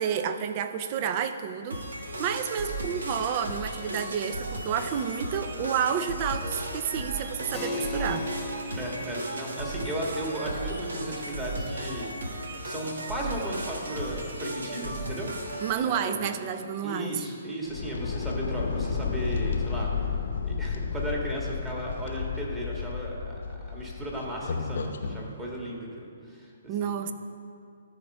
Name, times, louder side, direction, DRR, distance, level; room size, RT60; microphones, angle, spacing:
voice 1, 0.0-1.8 2.2-8.3 15.6-17.2 26.7-27.1, right 8 dB, 35° right, 9 dB, 0.6 m, -30 dB
sound 1, 1.7-15.7, right 1 dB, 80° right, 1.4 m, -35 dB
Keyboard (musical), 7.5-17.7, left 2 dB, 10° left, 1.2 m, -42 dB
voice 2, 8.8-12.1 12.6-15.3 15.8-16.3 16.8-19.9 20.4-26.9, right 1 dB, 10° right, -4 dB, 1.9 m, -35 dB
sound 2, 17.6-25.2, left 5 dB, 70° left, 0.8 m, -32 dB
13.5 x 4.5 x 5.5 m, 2.4 s
hypercardioid pair, 140°, 0 cm